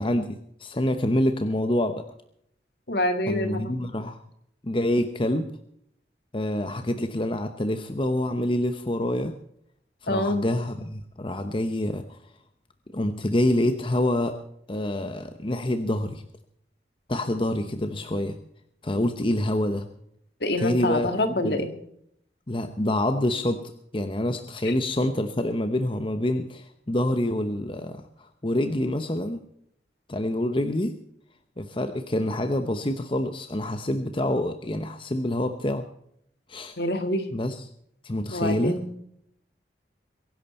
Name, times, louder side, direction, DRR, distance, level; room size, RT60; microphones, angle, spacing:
voice 1, 0.0-2.0 3.3-4.2 4.6-5.5 6.3-9.3 10.0-12.2 12.9-14.4 14.7-16.2 17.1-18.4 18.8-19.9 20.6-21.1 21.4-21.6 22.5-29.4 30.1-31.0 31.6-35.8 36.5-36.8 37.3-37.6 38.0-38.8, left 1 dB, 30° left, 8 dB, 0.9 m, -26 dB
voice 2, 2.9-3.8 10.1-10.4 20.4-21.7 24.6-24.7 36.8-37.3 38.3-38.8, left 1 dB, 60° left, 7 dB, 2.0 m, -26 dB
23.0 x 11.0 x 4.4 m, 0.71 s
head